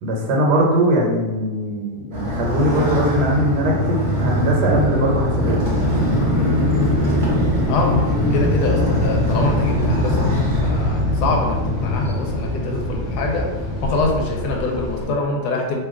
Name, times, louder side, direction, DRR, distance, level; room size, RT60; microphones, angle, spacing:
voice 1, 0.0-5.6, equal, 75° right, -1 dB, 1.2 m, -20 dB
Motorcycle, 2.1-14.3, equal, 45° right, 0.6 m, -21 dB
sound 1, 5.7-15.0, equal, 50° left, 0.7 m, -30 dB
voice 2, 7.7-10.3 10.6-13.5 13.8-15.8, left 3 dB, 80° left, 0 dB, 1.2 m, -24 dB
2.9 x 2.2 x 3.6 m, 1.2 s
omnidirectional pair, 1.8 m